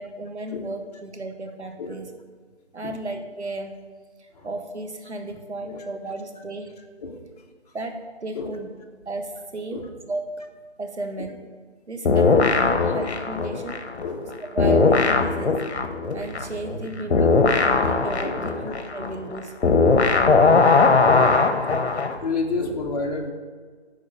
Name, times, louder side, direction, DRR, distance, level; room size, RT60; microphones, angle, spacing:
voice 1, 0.0-2.1 2.7-3.8 4.2-6.8 7.7-8.7 9.0-10.4 10.8-11.5 11.9-13.8 14.5-15.6 16.1-19.6, right 2 dB, 80° right, 4 dB, 1.5 m, -34 dB
sound 1, 12.1-14.3 14.6-22.2, left 4 dB, 70° left, 1.1 m, -19 dB
voice 2, 14.0-14.4 15.5-15.6 17.2-17.3 18.2-18.4 19.8-20.0 21.2-21.6 22.2-23.3, left 3 dB, 35° left, 1 dB, 1.1 m, -31 dB
9.5 x 5.0 x 6.7 m, 1.5 s
figure-of-eight pair, 160°, 33 cm